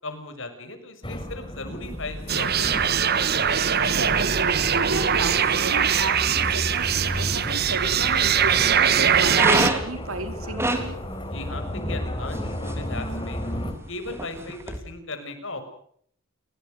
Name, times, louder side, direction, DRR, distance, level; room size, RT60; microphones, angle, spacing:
voice 1, 0.0-2.8 11.3-13.4 13.9-15.6, left 2 dB, 65° left, 8 dB, 6.4 m, -37 dB
sound 1, 1.0-13.7, left 1 dB, 25° left, 4.2 m, -34 dB
sound 2, 1.7-14.8, right 1 dB, 10° right, 3.8 m, -33 dB
sound 3, 2.3-9.7, right 8 dB, 50° right, 1.3 m, -22 dB
voice 2, 3.9-11.0, right 2 dB, 85° right, 8 dB, 4.5 m, -33 dB
30.0 x 19.5 x 6.6 m, 0.64 s
head